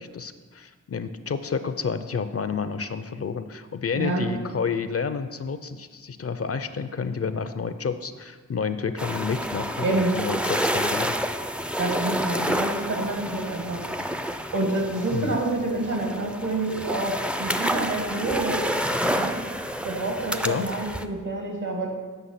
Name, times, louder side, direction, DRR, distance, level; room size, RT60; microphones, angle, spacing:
voice 1, 0.0-11.2 15.1-15.3 20.4-20.7, left 5 dB, 45° left, 11 dB, 0.5 m, -30 dB
voice 2, 3.9-4.3 9.8-10.1 11.8-13.8 14.5-18.6 19.1-19.4 19.8-21.9, right 2 dB, 65° right, 1 dB, 2.0 m, -28 dB
sound 1, 9.0-21.1, equal, 5° right, 0.4 m, -29 dB
8.0 x 5.7 x 5.7 m, 1.4 s
cardioid pair, 50°, 32 cm